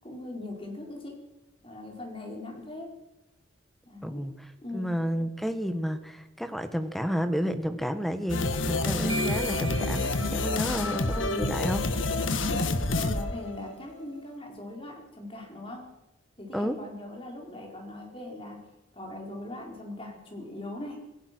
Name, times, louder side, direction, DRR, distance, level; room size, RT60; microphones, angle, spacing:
voice 1, 0.0-1.2 1.6-2.9 3.8-4.2 4.6-5.0 12.2-15.9 16.4-18.6 18.9-21.0, left 1 dB, 30° left, 2 dB, 4.9 m, -40 dB
voice 2, 4.0-4.5 4.7-11.9 16.5-16.8, equal, ahead, 9 dB, 1.5 m, -31 dB
sound 1, 8.3-14.0, left 2 dB, 85° left, 1.6 m, -28 dB
sound 2, 9.1-11.2, right 4 dB, 20° right, 1.3 m, -40 dB
27.0 x 17.0 x 6.2 m, 0.96 s
head